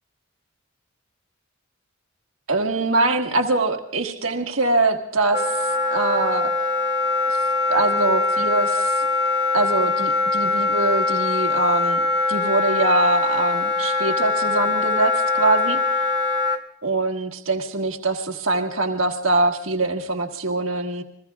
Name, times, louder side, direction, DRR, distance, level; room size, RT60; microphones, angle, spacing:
voice 1, 2.5-6.5 7.3-7.4 7.7-9.1 9.5-12.0 12.3-15.8 16.8-21.0, right 2 dB, 85° right, 3 dB, 1.4 m, -23 dB
Wind instrument woodwind instrument, 5.3-16.6, left 3 dB, 20° right, 1.0 m, -22 dB
29.0 x 21.5 x 2.4 m, 0.74 s
head